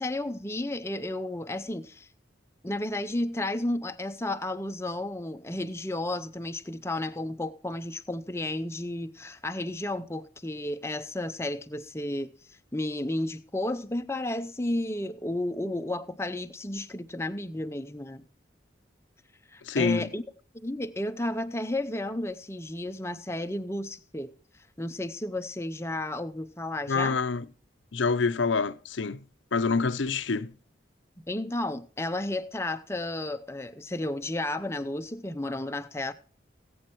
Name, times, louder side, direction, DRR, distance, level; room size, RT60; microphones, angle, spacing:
voice 1, 0.0-2.1 2.6-12.3 12.7-18.2 19.5-20.2 20.5-24.3 24.8-27.2 31.3-36.1, left 1 dB, 15° left, 0.7 m, -32 dB
voice 2, 19.6-20.1 26.9-27.5 27.9-29.2 29.5-30.5, left 4 dB, 85° left, 0.7 m, -26 dB
19.0 x 8.7 x 3.0 m
head